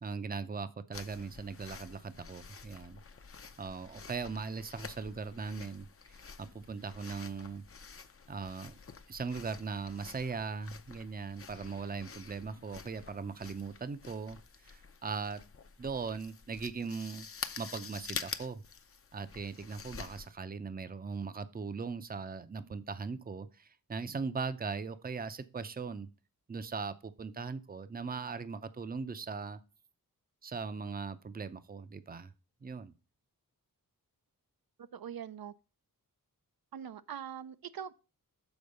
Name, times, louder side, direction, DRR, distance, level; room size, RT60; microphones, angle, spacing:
voice 1, 0.0-3.0 3.6-7.6 8.3-8.7 9.1-14.4 14.6-15.4 15.8-17.3 17.6-18.6 19.1-26.1 26.5-29.6 30.4-32.3 32.6-32.9, right 5 dB, 25° right, 0.6 m, -39 dB
sound 1, 0.9-20.3, left 5 dB, 40° left, 0.6 m, -48 dB
voice 2, 34.9-35.5 36.7-37.9, right 8 dB, 80° right, 0.6 m, -42 dB
7.1 x 4.5 x 6.4 m
wide cardioid pair, 110°, 35 cm